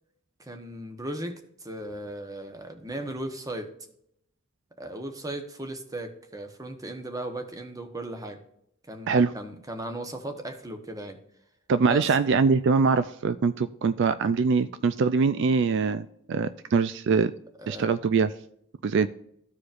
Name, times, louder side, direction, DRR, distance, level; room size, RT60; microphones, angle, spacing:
voice 1, 0.4-3.7 4.8-8.4 8.9-11.2 11.9-12.2 17.6-17.9, right 1 dB, 15° right, 6 dB, 1.0 m, -36 dB
voice 2, 11.7-17.3 17.7-18.3 18.8-19.1, right 5 dB, 65° right, 12 dB, 0.4 m, -23 dB
14.5 x 4.9 x 2.5 m, 0.73 s
head